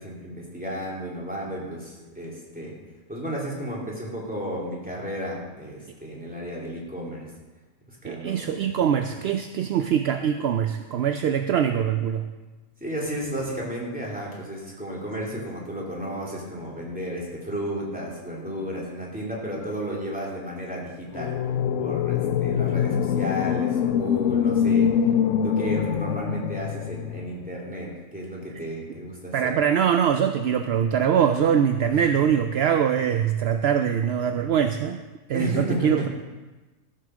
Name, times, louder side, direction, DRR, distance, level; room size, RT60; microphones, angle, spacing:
voice 1, 0.0-2.7 3.1-7.3 7.9-8.7 9.0-9.2 12.8-21.4 21.8-24.9 25.4-29.6 32.0-32.3 35.3-36.1, equal, 5° right, -4 dB, 2.9 m, -33 dB
voice 2, 8.0-12.3 29.3-35.0 35.3-36.1, right 8 dB, 65° right, 8 dB, 0.6 m, -23 dB
sound 1, 21.1-27.3, left 8 dB, 70° left, 0.9 m, -24 dB
14.0 x 6.7 x 6.2 m, 1.2 s
omnidirectional pair, 1.5 m